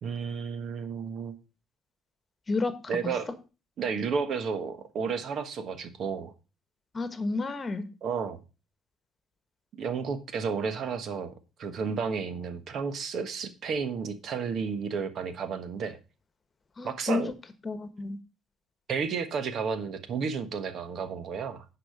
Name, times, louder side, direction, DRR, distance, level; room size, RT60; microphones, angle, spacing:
voice 1, 0.0-1.4 2.9-3.3 3.8-6.3 8.0-8.4 9.8-11.3 11.6-16.0 16.8-17.3 18.9-21.6, right 5 dB, 60° right, 9 dB, 1.3 m, -32 dB
voice 2, 2.5-3.0 6.9-7.9 16.8-17.2 17.6-18.2, left 3 dB, 30° left, 11 dB, 1.3 m, -31 dB
10.0 x 5.0 x 4.9 m, 0.31 s
cardioid pair, 95°, 0 cm